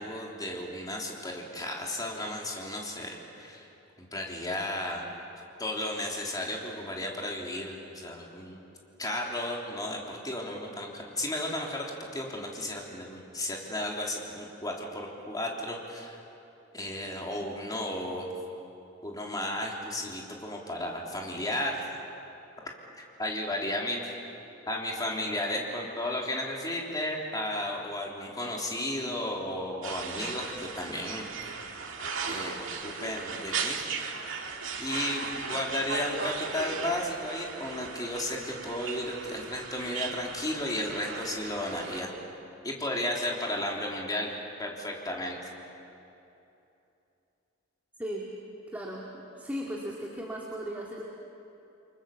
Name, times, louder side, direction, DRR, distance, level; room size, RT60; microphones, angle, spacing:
voice 1, 0.0-3.7 4.0-5.1 5.6-8.6 9.0-16.2 16.7-18.3 19.0-21.9 22.8-24.2 24.6-31.7 32.2-33.8 34.8-42.1 42.6-44.3 44.6-45.4, left 1 dB, 20° left, -1 dB, 3.5 m, -34 dB
sound 1, 29.8-42.0, right 5 dB, 70° right, 2.3 m, -37 dB
voice 2, 48.7-51.0, equal, 10° right, -3 dB, 2.3 m, -36 dB
29.5 x 23.5 x 7.3 m, 2.8 s
head